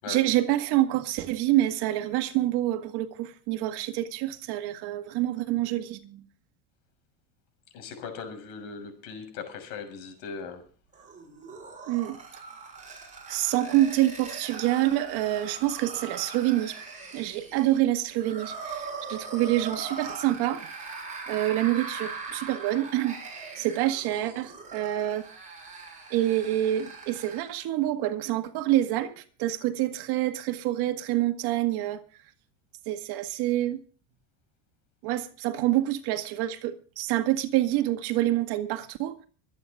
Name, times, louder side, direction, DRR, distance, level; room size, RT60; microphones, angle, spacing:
voice 1, 0.1-6.2 11.9-12.2 13.3-16.8 17.1-20.7 21.3-23.2 23.6-25.2 26.1-32.0 32.9-33.8 35.0-39.1, right 14 dB, 55° right, 2.0 m, -27 dB
voice 2, 7.7-10.6, left 5 dB, 70° left, 6.4 m, -39 dB
sound 1, 10.9-27.6, right 4 dB, 15° right, 6.7 m, -41 dB
24.5 x 9.4 x 3.7 m
cardioid pair, 160°, 47 cm